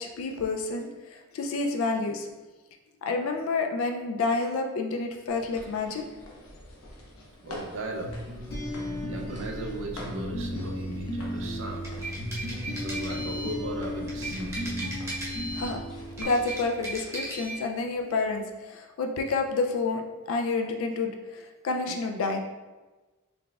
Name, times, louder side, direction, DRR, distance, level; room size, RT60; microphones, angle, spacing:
voice 1, 0.0-2.3 3.0-6.0 15.5-15.8 16.2-20.0 20.3-22.4, left 3 dB, 70° left, 4 dB, 0.4 m, -29 dB
sound 1, 5.3-16.2, left 1 dB, 90° left, 0.8 m, -47 dB
voice 2, 7.4-8.2 9.1-12.0 12.7-14.8, right 2 dB, 60° right, 1 dB, 0.4 m, -37 dB
sound 2, 8.0-16.7, left 1 dB, 45° left, 0.9 m, -35 dB
sound 3, 11.7-13.6 14.1-15.8 16.1-17.6, right 1 dB, 15° right, 0.6 m, -36 dB
3.9 x 3.4 x 2.3 m, 1.2 s
head